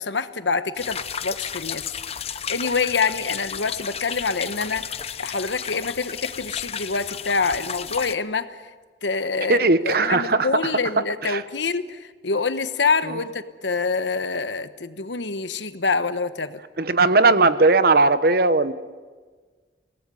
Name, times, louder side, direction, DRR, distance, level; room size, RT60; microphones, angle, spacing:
voice 1, 0.0-1.9 2.5-4.9 5.2-8.6 9.0-16.6, left 4 dB, 90° left, 12 dB, 1.2 m, -26 dB
sound 1, 0.8-8.1, left 7 dB, 35° left, 0.8 m, -33 dB
voice 2, 9.5-10.5 11.2-11.4 16.8-18.7, right 3 dB, 55° right, 13 dB, 1.0 m, -18 dB
24.0 x 18.5 x 9.7 m, 1.4 s
head